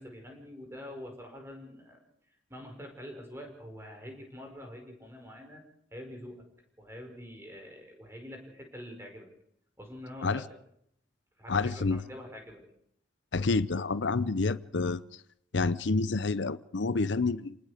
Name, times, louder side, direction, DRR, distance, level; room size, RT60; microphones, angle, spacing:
voice 1, 0.0-2.0 2.5-5.6 5.9-6.4 6.8-9.3 9.8-10.4 11.4-12.6, equal, 15° right, 3 dB, 5.2 m, -45 dB
voice 2, 11.5-12.0 13.3-15.0 15.5-17.6, left 3 dB, 75° left, 15 dB, 0.7 m, -28 dB
28.5 x 19.5 x 5.1 m, 0.71 s
head